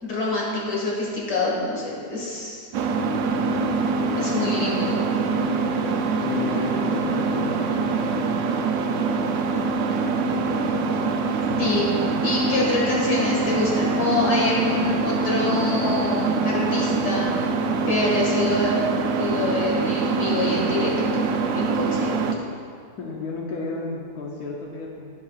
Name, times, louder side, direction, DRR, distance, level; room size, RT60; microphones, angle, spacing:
voice 1, 0.0-2.7 4.1-5.0 11.6-17.4 17.8-18.8 19.1-21.3 21.5-22.1, left 2 dB, 90° left, -4 dB, 2.6 m, -25 dB
sound 1, 2.7-22.3, right 4 dB, 70° right, 0.8 m, -24 dB
voice 2, 6.2-8.3 23.0-25.1, left 3 dB, 70° left, -2 dB, 1.3 m, -33 dB
15.5 x 5.6 x 2.4 m, 2.2 s
omnidirectional pair, 1.7 m